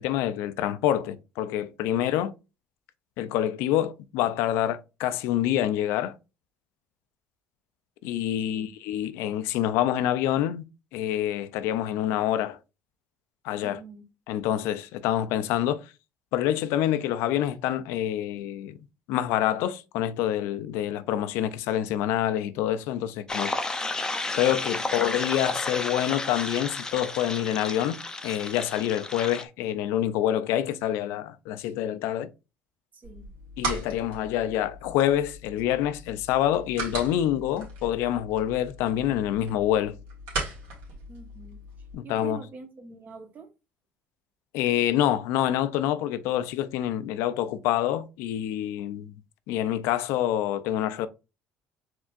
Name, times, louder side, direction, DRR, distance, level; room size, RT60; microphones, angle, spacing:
voice 1, 0.0-2.3 3.2-6.2 8.0-10.6 10.9-12.6 13.4-13.8 14.3-15.9 16.3-18.8 19.1-23.6 24.3-32.3 33.6-40.0 41.9-42.4 44.5-49.1 49.5-51.1, left 12 dB, 80° left, 0.4 m, -27 dB
voice 2, 13.6-14.0 24.8-24.9 32.9-33.3 41.1-41.6 42.0-43.5, right 4 dB, 40° right, 1.2 m, -45 dB
sound 1, 23.3-29.4, left 2 dB, 15° left, 0.6 m, -32 dB
sound 2, 33.0-41.9, right 3 dB, 80° right, 2.0 m, -38 dB
4.5 x 3.4 x 2.4 m
supercardioid pair, 100°, 4 cm